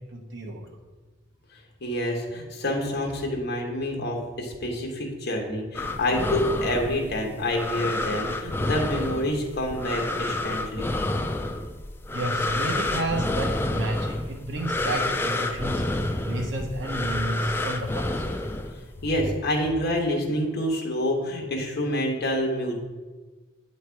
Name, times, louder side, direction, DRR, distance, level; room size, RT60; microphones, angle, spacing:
voice 1, 0.1-0.7 12.1-15.8 16.2-18.2, right 1 dB, 65° right, 2 dB, 1.0 m, -31 dB
voice 2, 1.8-10.9 19.0-22.8, left 1 dB, 55° left, 1 dB, 1.1 m, -27 dB
sound 1, 5.7-19.0, left 2 dB, 10° left, 0.3 m, -29 dB
8.4 x 3.2 x 4.5 m, 1.3 s
head